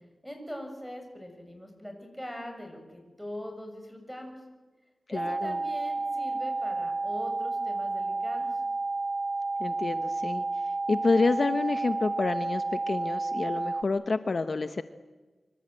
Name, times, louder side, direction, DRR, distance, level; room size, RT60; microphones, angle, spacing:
voice 1, 0.2-4.4 5.1-8.5, equal, ahead, 4 dB, 6.8 m, -41 dB
voice 2, 5.1-5.6 9.6-14.8, left 3 dB, 50° left, 9 dB, 0.9 m, -29 dB
sound 1, 5.1-13.8, right 3 dB, 30° right, 0.9 m, -31 dB
26.0 x 24.5 x 8.9 m, 1.3 s
wide cardioid pair, 125°, 0 cm